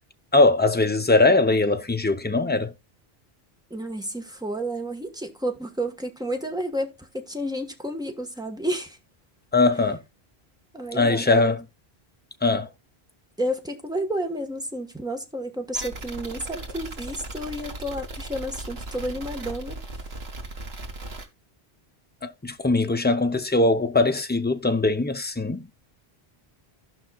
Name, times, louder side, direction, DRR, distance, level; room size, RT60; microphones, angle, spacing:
voice 1, 0.3-2.7 9.5-10.0 10.9-11.6 12.4-12.7 22.2-25.7, left 2 dB, 15° left, 0.5 m, -21 dB
voice 2, 3.7-9.0 10.7-11.6 13.4-19.8, right 1 dB, 5° right, 1.2 m, -31 dB
sound 1, 15.7-21.3, right 2 dB, 75° right, 1.8 m, -37 dB
16.0 x 5.6 x 2.3 m
omnidirectional pair, 1.1 m